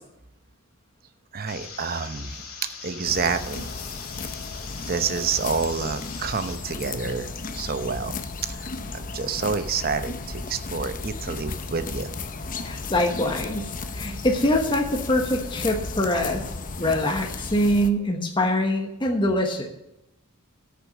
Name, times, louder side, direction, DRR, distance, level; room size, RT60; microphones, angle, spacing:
voice 1, 1.3-2.5 2.8-3.7 4.8-12.1, right 5 dB, 40° right, 9 dB, 0.8 m, -29 dB
sound 1, 1.5-6.5, left 6 dB, 65° left, 2.4 m, -41 dB
sound 2, 3.0-17.9, left 3 dB, 35° left, 0.8 m, -35 dB
voice 2, 12.6-16.4 16.8-19.7, left 1 dB, 20° left, 2 dB, 1.2 m, -24 dB
13.5 x 6.9 x 6.3 m, 0.89 s
head